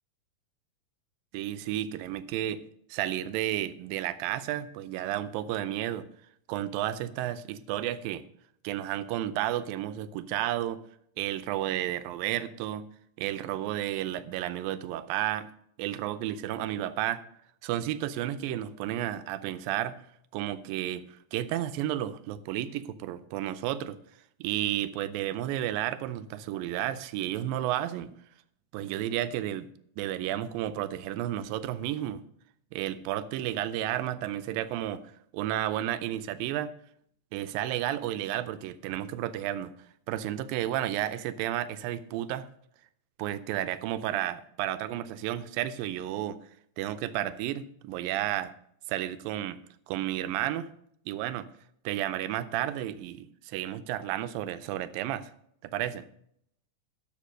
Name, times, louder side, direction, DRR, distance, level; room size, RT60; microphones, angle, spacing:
voice 1, 1.3-6.1 6.5-8.2 8.6-10.8 11.2-12.9 13.2-15.5 15.8-17.2 17.6-20.0 20.3-24.0 24.4-28.1 28.7-29.7 30.0-32.2 32.7-35.0 35.3-36.7 37.3-39.7 40.1-42.5 43.2-46.4 46.8-48.5 48.9-49.6 49.9-50.7 51.1-51.5 51.9-55.3 55.6-56.1, right 12 dB, 85° right, 13 dB, 2.3 m, -32 dB
12.0 x 5.2 x 6.4 m, 0.70 s
omnidirectional pair, 4.0 m